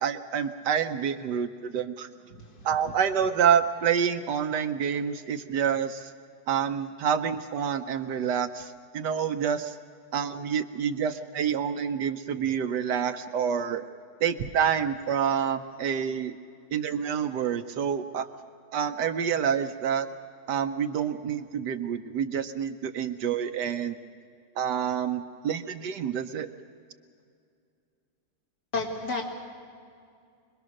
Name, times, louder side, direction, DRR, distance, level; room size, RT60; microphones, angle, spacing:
voice 1, 0.0-2.1 2.6-6.1 6.5-9.7 10.1-13.9 14.2-16.4 16.7-18.3 18.7-20.1 20.5-24.0 24.6-26.5, right 8 dB, 70° right, 9 dB, 1.3 m, -27 dB
voice 2, 2.3-2.7 28.7-29.2, left 3 dB, 60° left, 0 dB, 3.4 m, -31 dB
25.0 x 21.5 x 6.5 m, 2.3 s
omnidirectional pair, 2.0 m